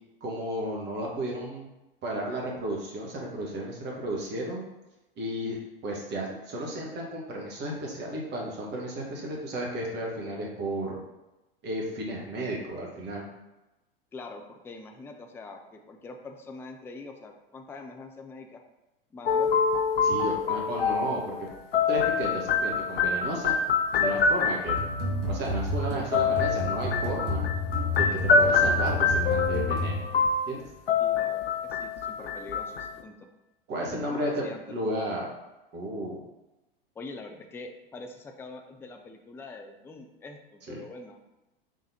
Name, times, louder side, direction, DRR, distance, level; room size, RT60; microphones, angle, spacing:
voice 1, 0.2-1.7 2.0-4.6 5.2-11.0 11.6-13.2 20.0-21.5 21.9-23.6 23.9-24.8 25.3-27.5 28.0-30.0 30.5-30.6 33.7-35.3 35.7-36.2 40.7-40.8, right 1 dB, 35° right, -2 dB, 1.5 m, -33 dB
voice 2, 14.1-18.6 19.1-19.6 31.0-33.1 33.9-34.6 37.0-41.2, left 3 dB, 10° left, 4 dB, 0.4 m, -44 dB
sound 1, 19.3-25.1 26.1-33.0, left 5 dB, 80° left, 0.5 m, -26 dB
sound 2, 24.7-30.4, left 2 dB, 60° right, 1.4 m, -31 dB
5.0 x 3.6 x 2.8 m, 1.0 s
figure-of-eight pair, 85°, 29 cm